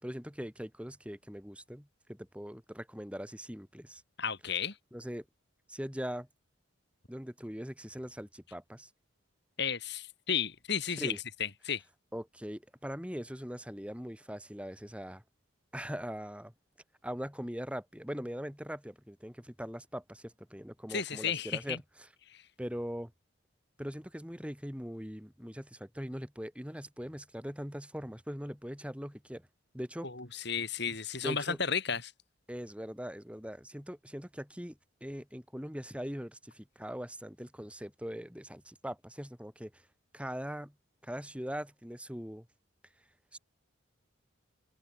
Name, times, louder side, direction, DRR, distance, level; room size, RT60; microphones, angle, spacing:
voice 1, 0.0-4.0 4.9-5.2 5.7-6.3 7.1-8.9 11.0-11.2 12.1-15.2 15.7-16.5 17.0-22.1 22.6-23.1 23.8-29.5 29.7-30.1 30.4-30.5 31.2-31.6 32.5-39.8 40.1-40.7 41.0-42.5 43.3-43.4, equal, 5° right, 6.3 m, -41 dB
voice 2, 4.2-4.7 9.6-11.1 11.4-11.8 20.9-21.8 30.0-32.1, left 6 dB, 55° left, 4.9 m, -33 dB
open air
head